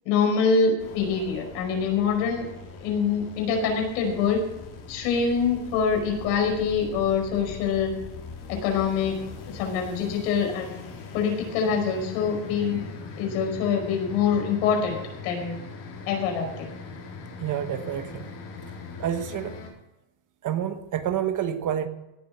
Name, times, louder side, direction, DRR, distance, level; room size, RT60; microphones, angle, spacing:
voice 1, 0.1-2.5 2.8-4.4 4.9-7.9 8.5-9.2 9.5-10.8 11.1-12.9 13.2-15.6 16.1-16.7, left 6 dB, 80° left, 2 dB, 5.3 m, -25 dB
sound 1, 0.8-19.7, left 4 dB, 55° left, 4.9 m, -41 dB
voice 2, 17.4-18.3 19.0-19.6 20.4-21.9, right 10 dB, 40° right, 9 dB, 1.3 m, -28 dB
17.0 x 7.4 x 7.6 m, 0.99 s
supercardioid pair, 125°, 49 cm